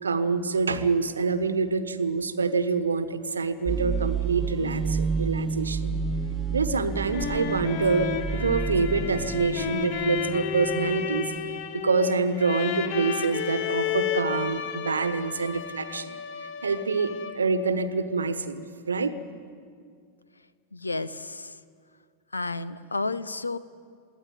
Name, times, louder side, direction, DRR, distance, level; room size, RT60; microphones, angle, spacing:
voice 1, 0.0-5.9 6.5-16.2 16.6-19.2, right 4 dB, 75° right, 11 dB, 1.2 m, -26 dB
sound 1, 3.7-11.6, right 4 dB, 15° right, 0.7 m, -30 dB
sound 2, 6.8-17.6, left 8 dB, 45° left, 1.2 m, -32 dB
voice 2, 20.7-21.5 22.3-23.6, left 3 dB, 80° left, 17 dB, 0.8 m, -31 dB
23.0 x 16.5 x 9.4 m, 2.1 s
figure-of-eight pair, 90°, 0 cm